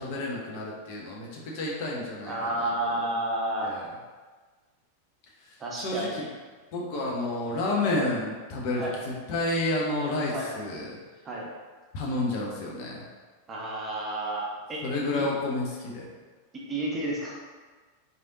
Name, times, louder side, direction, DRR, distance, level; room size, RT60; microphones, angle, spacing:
voice 1, 0.0-3.0 3.6-4.0 5.4-6.2 6.7-11.0 11.9-13.1 14.8-16.1, left 2 dB, 45° left, -3 dB, 0.8 m, -30 dB
voice 2, 2.3-3.8 5.6-6.3 8.8-8.9 10.3-10.5 11.2-11.5 13.5-14.8 15.1-15.2 16.5-17.4, right 1 dB, 20° right, -3 dB, 0.8 m, -31 dB
4.1 x 3.3 x 2.7 m, 1.4 s
figure-of-eight pair, 90°, 0 cm